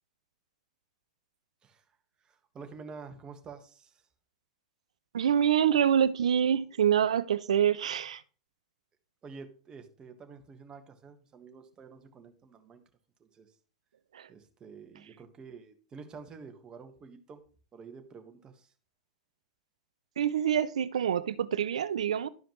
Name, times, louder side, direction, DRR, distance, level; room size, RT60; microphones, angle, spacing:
voice 1, 2.2-4.0 9.2-12.8 13.2-13.5 14.3-17.4 17.7-18.7, right 5 dB, 25° right, 1.4 m, -48 dB
voice 2, 5.1-8.2 14.1-14.3 20.2-22.3, right 9 dB, 80° right, 0.5 m, -26 dB
12.0 x 5.0 x 3.1 m
hypercardioid pair, 105°, 3 cm